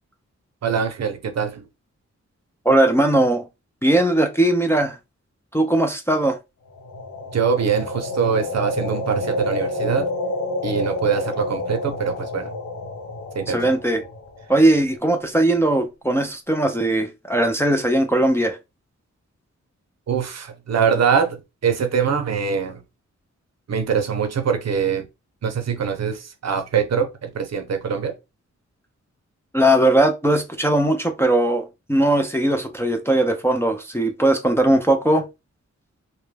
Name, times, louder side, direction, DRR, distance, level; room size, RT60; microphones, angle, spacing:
voice 1, 0.6-1.7 7.3-10.1 10.6-12.5 13.3-13.7 20.1-22.8 23.7-25.1 25.4-28.1, right 6 dB, 65° right, 0.6 m, -23 dB
voice 2, 2.7-3.5 3.8-5.0 5.5-6.4 13.5-14.0 14.5-18.6 29.5-35.2, right 1 dB, 10° left, 0.4 m, -19 dB
sound 1, 6.8-14.8, left 2 dB, 80° left, 0.7 m, -29 dB
2.2 x 2.1 x 3.2 m
wide cardioid pair, 90°, 29 cm